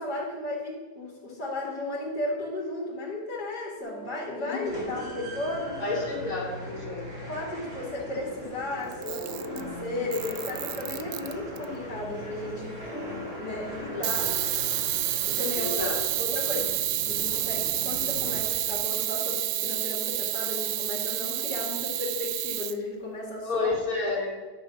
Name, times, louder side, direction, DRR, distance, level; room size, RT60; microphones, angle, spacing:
voice 1, 0.0-6.0 7.3-12.8 13.4-14.3 15.2-15.8 16.2-16.8 17.1-23.7, left 2 dB, 85° left, -3 dB, 2.7 m, -34 dB
sound 1, 3.8-6.9 7.9-12.2 12.5-16.7, left 1 dB, 40° left, 2.3 m, -45 dB
voice 2, 4.4-5.0 5.8-7.0 13.9-14.4 15.5-16.0 23.4-24.4, left 3 dB, 60° left, -5 dB, 3.4 m, -31 dB
sound 2, 4.6-18.9, right 1 dB, 40° right, 3.2 m, -41 dB
Camera, 8.9-9.7 10.1-11.6 14.0-22.8, right 14 dB, 85° right, 1.2 m, -29 dB
10.5 x 7.1 x 6.2 m, 1.4 s
omnidirectional pair, 1.7 m